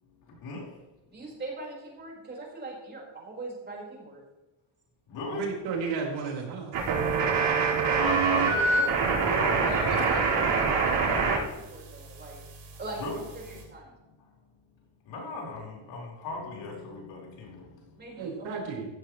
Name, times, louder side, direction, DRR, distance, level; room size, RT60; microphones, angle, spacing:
voice 1, 0.0-0.9 5.1-5.6 7.6-10.0 12.9-13.2 13.5-13.7 14.0-14.7 15.0-18.2 18.6-18.7, left 3 dB, 65° left, 5.0 m, -38 dB
voice 2, 1.1-4.2 9.7-12.4 12.8-13.9 18.0-18.5, right 2 dB, 20° right, 5.1 m, -41 dB
voice 3, 5.3-6.7 18.2-18.9, right 5 dB, 80° right, 5.1 m, -32 dB
sound 1, 6.7-11.4 11.6-13.6, right 5 dB, 65° right, 4.9 m, -26 dB
15.5 x 14.5 x 3.3 m
cardioid pair, 175°, 47 cm